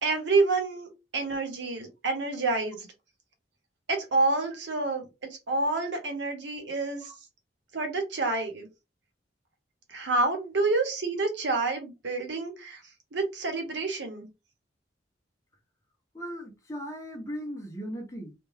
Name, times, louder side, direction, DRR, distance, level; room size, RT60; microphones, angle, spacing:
voice 1, 0.0-2.9 3.9-5.1 5.5-7.1 7.7-8.7 9.9-12.8 13.1-14.3, right 3 dB, 70° right, 0.9 m, -28 dB
voice 2, 16.1-18.3, equal, 15° left, 0.8 m, -38 dB
2.5 x 2.2 x 3.1 m
head